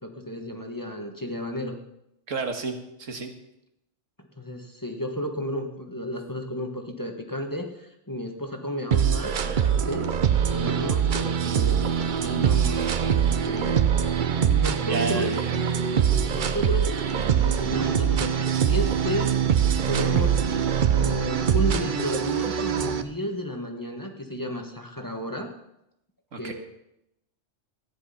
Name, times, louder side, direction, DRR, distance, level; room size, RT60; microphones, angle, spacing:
voice 1, 0.0-1.8 4.2-10.1 10.5-12.9 13.4-13.8 14.4-15.3 16.1-19.3 19.9-20.4 20.9-25.5 26.3-26.5, equal, 15° left, 3 dB, 1.3 m, -33 dB
voice 2, 2.3-3.3 14.8-15.6 26.3-26.5, right 4 dB, 90° right, 4 dB, 1.9 m, -31 dB
sound 1, 8.9-23.0, right 8 dB, 45° right, 0.7 m, -23 dB
14.0 x 10.0 x 5.6 m, 0.83 s
omnidirectional pair, 1.3 m